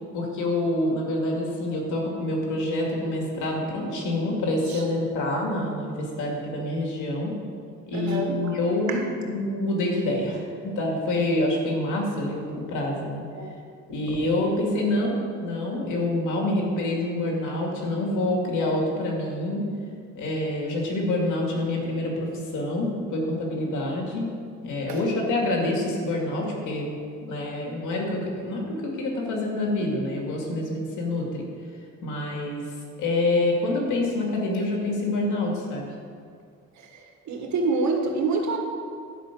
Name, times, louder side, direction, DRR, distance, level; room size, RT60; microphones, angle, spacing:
voice 1, 0.1-7.4 7.9-13.2 13.9-19.7 20.1-24.4 24.6-26.9 27.2-31.5 32.0-32.7 33.0-35.9, left 1 dB, 85° left, -1 dB, 2.4 m, -27 dB
voice 2, 7.9-8.6 8.9-9.0 13.4-13.5 14.1-14.2 24.9-25.0 36.9-38.6, right 3 dB, 65° right, 2 dB, 1.7 m, -27 dB
11.0 x 5.6 x 7.5 m, 2.2 s
cardioid pair, 90°, 30 cm